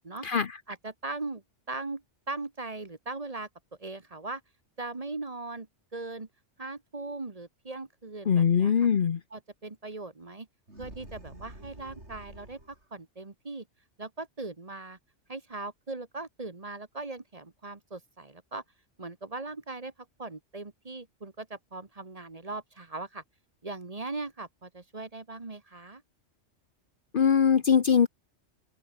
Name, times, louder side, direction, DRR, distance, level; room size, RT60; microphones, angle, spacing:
voice 1, 0.7-1.4 1.7-3.5 3.8-4.4 4.8-6.3 6.6-8.7 9.3-10.5 10.8-13.6 14.0-15.0 15.3-18.6 19.0-19.9 20.2-23.2 23.6-26.0, right 3 dB, 30° right, 1.5 m, -39 dB
voice 2, 8.3-9.2 27.1-28.1, left 7 dB, 50° left, 0.9 m, -22 dB
sound 1, 10.7-12.9, right 1 dB, 65° right, 8.3 m, -47 dB
open air
omnidirectional pair, 1.2 m